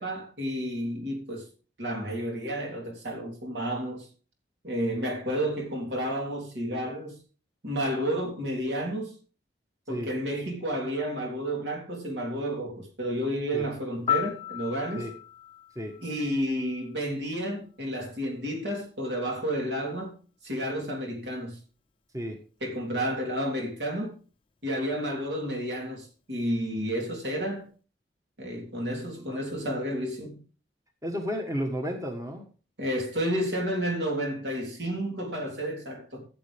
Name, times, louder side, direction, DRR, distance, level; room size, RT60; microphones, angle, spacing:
voice 1, 0.0-1.4 1.8-4.1 4.6-7.2 7.6-9.1 9.9-15.1 16.0-20.1 20.4-21.6 22.6-24.2 24.6-27.7 28.4-30.4 32.8-36.2, equal, 70° right, 3.5 m, -31 dB
Piano, 14.1-17.0 25.1-25.3, left 12 dB, 30° left, 0.6 m, -34 dB
voice 2, 31.0-32.4, equal, 20° right, 1.3 m, -32 dB
14.0 x 7.7 x 3.4 m
head